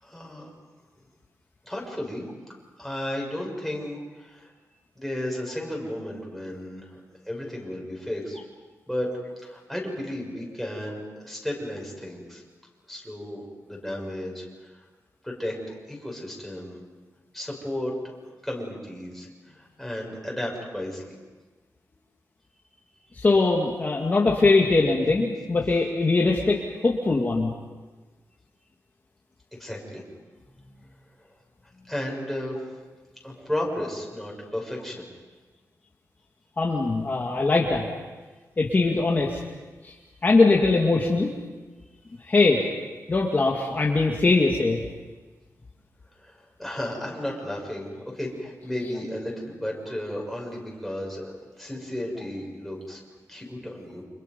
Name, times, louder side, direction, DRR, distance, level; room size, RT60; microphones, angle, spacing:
voice 1, 0.0-0.5 1.6-2.3 2.8-4.5 4.9-8.4 8.9-9.1 9.4-12.4 12.9-14.9 15.2-15.6 15.9-16.8 17.3-17.9 18.4-21.1 29.6-30.0 31.2-31.3 31.9-32.6 33.2-35.0 46.2-53.0 53.3-54.0, left 1 dB, ahead, -2 dB, 6.7 m, -33 dB
voice 2, 23.2-27.5 36.6-37.9 38.6-39.4 39.8-39.9 40.2-41.3 42.2-42.6 43.1-44.8, left 3 dB, 30° left, -1 dB, 2.3 m, -21 dB
30.0 x 27.5 x 5.5 m, 1.3 s
wide cardioid pair, 135°, 6 cm